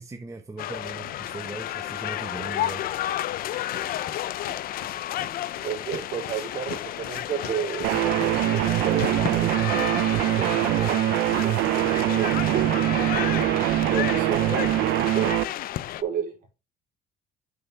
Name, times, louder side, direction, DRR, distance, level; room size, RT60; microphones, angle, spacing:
voice 1, 0.0-2.9, right 3 dB, 20° right, 1.0 m, -39 dB
sound 1, 0.6-16.0, left 13 dB, 60° left, 0.5 m, -32 dB
sound 2, 3.1-12.6, left 4 dB, 75° left, 3.0 m, -44 dB
voice 2, 5.6-9.5 10.1-11.1 11.4-12.8 13.2-14.7 15.0-15.3 16.0-16.3, right 8 dB, 55° right, 3.2 m, -32 dB
sound 3, 7.8-15.4, right 15 dB, 85° right, 0.5 m, -23 dB
6.7 x 6.5 x 3.3 m
cardioid pair, 110°, 17 cm